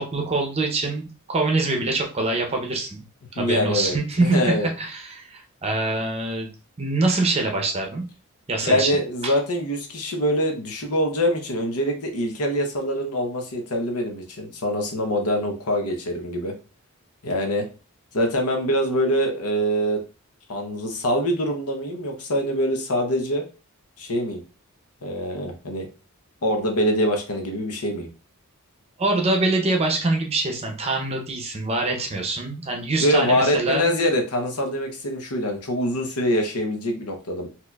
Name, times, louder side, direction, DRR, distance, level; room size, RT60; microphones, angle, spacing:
voice 1, 0.0-3.0 3.3-6.5 6.8-8.0 8.5-8.9 9.2-9.3 29.0-33.9, right 2 dB, 25° right, 2 dB, 0.6 m, -24 dB
voice 2, 3.4-4.7 8.6-16.5 17.2-17.7 18.1-20.0 20.5-23.4 24.0-24.4 25.0-25.9 26.4-28.1 33.0-37.5, equal, 85° left, 3 dB, 0.9 m, -24 dB
4.2 x 2.9 x 2.3 m, 0.33 s
head